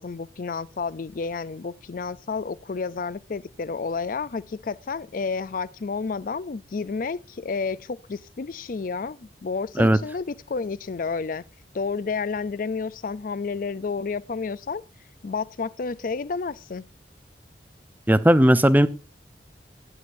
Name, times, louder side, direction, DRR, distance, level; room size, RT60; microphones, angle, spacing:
voice 1, 0.0-11.4 11.7-14.8 15.2-16.8, left 4 dB, 50° left, 0.4 m, -30 dB
voice 2, 18.1-18.9, equal, 10° right, 0.6 m, -16 dB
16.0 x 10.5 x 2.6 m
head